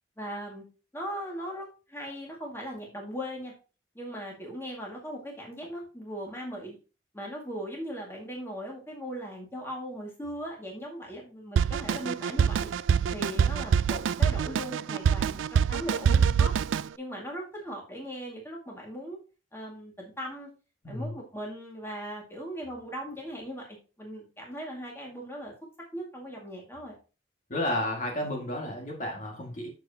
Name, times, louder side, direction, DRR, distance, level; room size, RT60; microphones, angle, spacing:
voice 1, 0.2-0.7 0.9-3.5 4.0-6.8 7.1-12.7 13.1-16.5 17.0-19.2 19.5-20.5 20.9-25.5 25.9-27.0, equal, 15° left, -1 dB, 2.0 m, -39 dB
Drum kit, 11.6-16.9, right 7 dB, 85° right, 0.3 m, -25 dB
voice 2, 20.8-21.2 27.5-29.7, left 1 dB, 40° left, 0 dB, 2.0 m, -32 dB
8.1 x 6.8 x 2.8 m, 0.33 s
head